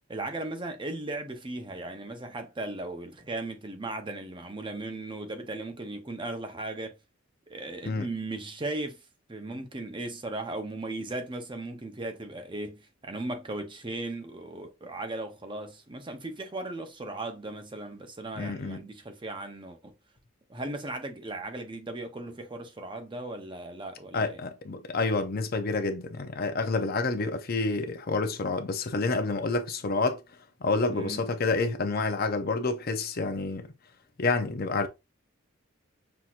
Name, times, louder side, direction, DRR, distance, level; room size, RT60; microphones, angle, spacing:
voice 1, 0.1-7.0 7.5-9.0 9.3-19.9 20.5-24.4 30.9-31.3, right 2 dB, 25° right, 0.7 m, -37 dB
voice 2, 18.4-18.8 24.1-30.2 30.6-33.7 34.2-34.9, left 3 dB, 45° left, 0.6 m, -28 dB
5.9 x 2.8 x 2.4 m
head